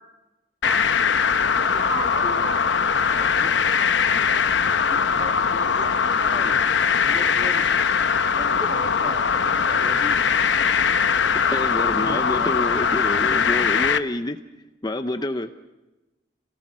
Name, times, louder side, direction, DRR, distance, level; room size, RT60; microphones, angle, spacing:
sound 1, 0.6-14.0, left 6 dB, 80° left, 0.9 m, -21 dB
voice 1, 1.6-3.0, right 1 dB, 5° right, 4 dB, 1.1 m, -33 dB
voice 2, 3.0-3.5 4.9-6.6 7.0-7.7 8.4-10.2 12.0-12.6, equal, 25° right, 5 dB, 1.9 m, -38 dB
voice 3, 11.3-14.4 14.8-15.5, left 1 dB, 20° left, 8 dB, 0.7 m, -28 dB
28.0 x 18.5 x 6.2 m, 1.1 s
head